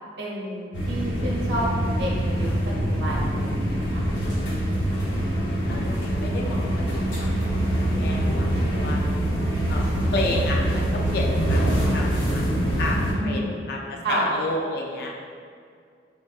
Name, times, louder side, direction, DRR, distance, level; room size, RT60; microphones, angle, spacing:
voice 1, 0.2-4.1 13.1-13.8 14.0-14.3, right 1 dB, 70° right, -4 dB, 0.7 m, -30 dB
sound 1, 0.7-13.1, right 1 dB, 90° left, 0.8 m, -24 dB
voice 2, 5.1-9.1 9.7-12.4 12.8-15.1, left 2 dB, 55° left, 0 dB, 0.4 m, -32 dB
4.2 x 2.2 x 2.3 m, 2.2 s
head